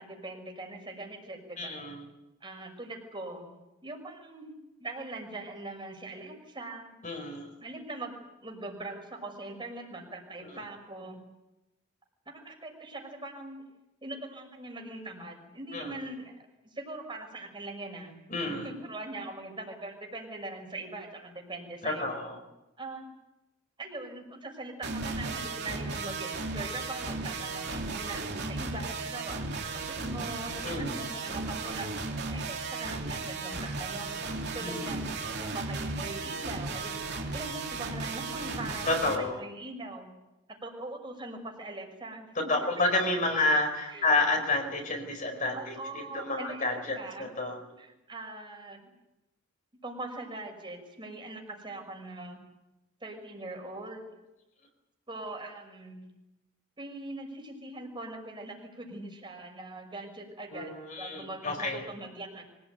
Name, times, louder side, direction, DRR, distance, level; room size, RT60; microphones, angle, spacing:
voice 1, 0.0-1.8 2.4-3.5 3.8-4.5 4.8-6.9 7.6-11.2 12.3-13.6 14.0-16.4 16.6-18.2 18.5-22.1 22.8-23.1 23.8-35.0 35.4-37.0 37.3-40.1 40.5-42.3 43.9-44.1 44.6-44.7 45.5-47.3 47.8-48.9 49.8-52.4 53.0-54.0 55.1-56.0 56.8-62.4, right 2 dB, 25° right, 2 dB, 5.9 m, -41 dB
voice 2, 1.6-2.0 7.0-7.5 10.5-10.6 15.7-16.0 18.3-18.7 21.8-22.4 30.6-31.0 34.6-35.0 38.9-39.4 42.3-47.6 60.5-61.8, left 2 dB, 40° left, 3 dB, 4.9 m, -30 dB
sound 1, 24.8-39.2, right 3 dB, 55° right, 3.1 m, -35 dB
25.0 x 18.0 x 9.4 m, 0.98 s
head